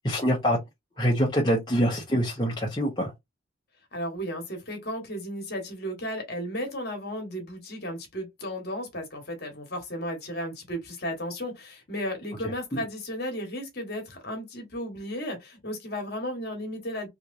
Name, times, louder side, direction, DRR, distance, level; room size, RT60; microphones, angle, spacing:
voice 1, 0.0-0.6 1.0-3.1 12.7-12.8, equal, 20° left, 0.9 m, -25 dB
voice 2, 3.9-17.1, equal, 50° left, 1.4 m, -34 dB
3.2 x 3.0 x 2.6 m
head